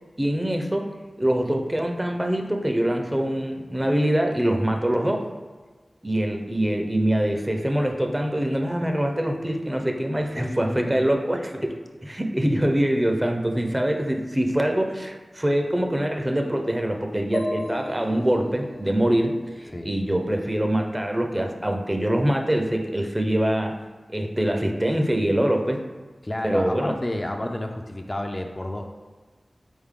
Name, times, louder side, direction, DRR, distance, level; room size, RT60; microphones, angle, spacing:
voice 1, 0.2-0.9 1.2-5.3 6.0-11.7 12.0-23.8 24.1-25.8 26.4-26.9, right 1 dB, 20° right, 3 dB, 0.5 m, -24 dB
voice 2, 10.4-11.1 19.7-19.9 26.2-28.9, left 1 dB, 35° left, 3 dB, 0.4 m, -30 dB
sound 1, 17.3-21.0, left 2 dB, 85° left, 0.6 m, -36 dB
4.0 x 3.6 x 3.6 m, 1.4 s
wide cardioid pair, 45°, 0 cm